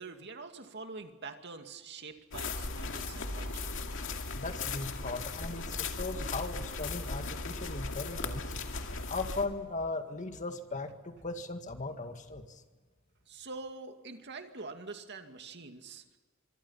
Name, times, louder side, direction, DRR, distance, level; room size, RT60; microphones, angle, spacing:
voice 1, 0.0-3.8 13.3-16.2, right 3 dB, 55° right, 6 dB, 2.3 m, -45 dB
sound 1, 2.3-9.5, left 3 dB, 65° left, 2.3 m, -37 dB
voice 2, 4.3-8.4 9.1-12.6, left 3 dB, 35° left, 6 dB, 2.0 m, -38 dB
25.5 x 24.0 x 5.8 m, 1.4 s
head